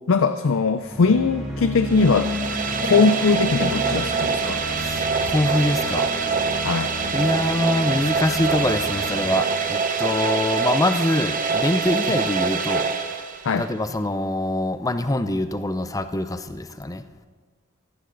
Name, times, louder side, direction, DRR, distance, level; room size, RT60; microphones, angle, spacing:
voice 1, 0.1-2.3 2.9-4.6 6.6-6.9 13.4-13.7, left 4 dB, 65° left, 11 dB, 0.5 m, -20 dB
sound 1, 0.8-10.8, left 1 dB, ahead, 2.7 m, -33 dB
sound 2, 1.8-13.7, right 5 dB, 40° right, 1.0 m, -25 dB
voice 2, 4.8-6.1 7.1-12.9 13.6-17.0, left 1 dB, 15° left, 10 dB, 0.5 m, -24 dB
15.5 x 13.5 x 3.9 m, 1.5 s
head